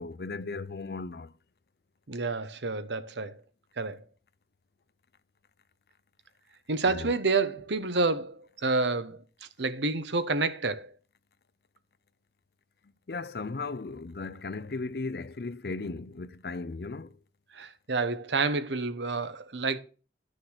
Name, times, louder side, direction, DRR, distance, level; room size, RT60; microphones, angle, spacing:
voice 1, 0.0-1.3 6.8-7.1 13.1-17.2, left 3 dB, 60° left, 0.6 m, -36 dB
voice 2, 2.1-3.4 3.8-4.0 6.7-9.2 9.6-10.9 17.5-19.8, right 3 dB, 90° right, 1.0 m, -29 dB
11.5 x 6.5 x 6.4 m
head